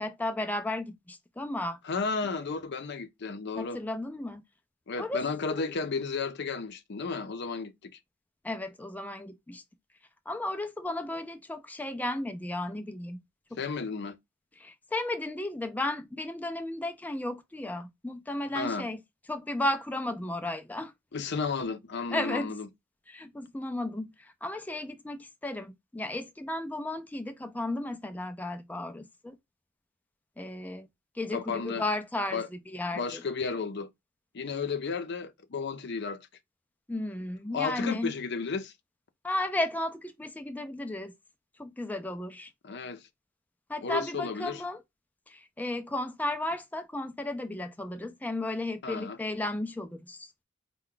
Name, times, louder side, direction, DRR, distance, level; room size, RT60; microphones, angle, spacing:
voice 1, 0.0-1.8 2.2-2.6 3.6-4.4 5.0-5.7 8.4-9.6 10.3-13.2 13.5-13.6 14.6-19.0 19.3-20.9 22.1-22.5 23.1-29.4 30.4-30.9 31.1-33.2 36.9-38.1 39.2-41.1 41.6-42.5 43.7-44.8 45.3-50.3, left 1 dB, 10° left, 0.4 m, -34 dB
voice 2, 1.8-3.8 4.9-7.9 13.6-14.2 18.5-18.9 21.1-22.7 31.3-31.8 32.3-32.5 32.9-33.9 34.3-36.3 37.5-38.7 42.6-43.0 43.8-44.6 48.8-49.2, left 4 dB, 60° left, 0.6 m, -33 dB
4.4 x 2.2 x 3.7 m
head